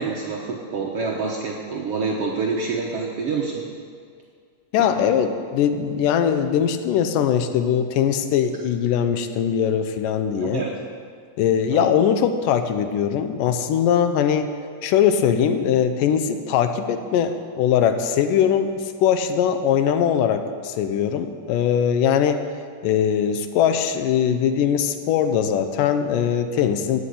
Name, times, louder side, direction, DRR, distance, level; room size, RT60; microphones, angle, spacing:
voice 1, 0.0-3.6 4.8-4.9 10.4-10.7 11.7-11.9, right 4 dB, 70° right, -2 dB, 1.4 m, -27 dB
voice 2, 4.7-10.7 11.4-14.5 14.8-22.4 22.8-27.0, left 8 dB, 75° left, 8 dB, 2.2 m, -21 dB
11.5 x 9.5 x 8.4 m, 2.1 s
omnidirectional pair, 4.3 m